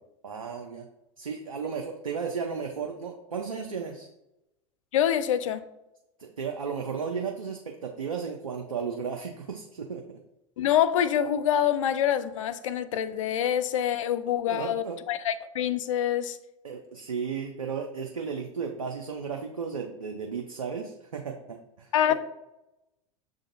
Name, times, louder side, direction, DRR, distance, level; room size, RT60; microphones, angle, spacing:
voice 1, 0.2-0.9 1.2-4.1 6.2-10.2 14.5-15.0 16.6-22.1, right 6 dB, 90° right, 3 dB, 0.4 m, -34 dB
voice 2, 4.9-5.6 10.6-16.4 21.9-22.1, left 10 dB, 70° left, 12 dB, 0.4 m, -26 dB
6.6 x 2.5 x 2.6 m, 0.91 s
hypercardioid pair, 85°, 17 cm